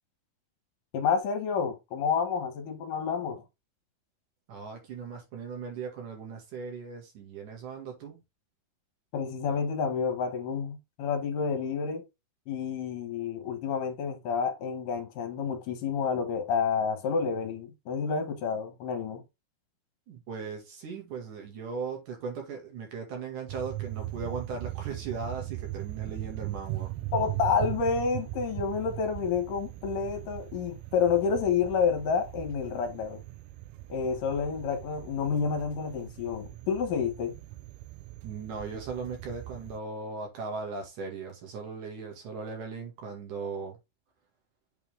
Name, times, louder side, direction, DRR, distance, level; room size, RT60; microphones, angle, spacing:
voice 1, 0.9-3.4 9.1-12.0 12.5-19.2 27.1-33.2 33.9-37.4, left 6 dB, 70° left, 2.6 m, -29 dB
voice 2, 4.5-8.2 20.1-26.9 38.2-43.8, right 5 dB, 65° right, 3.5 m, -38 dB
sound 1, 23.5-39.8, right 17 dB, 85° right, 1.8 m, -39 dB
8.2 x 4.4 x 3.6 m
omnidirectional pair, 4.1 m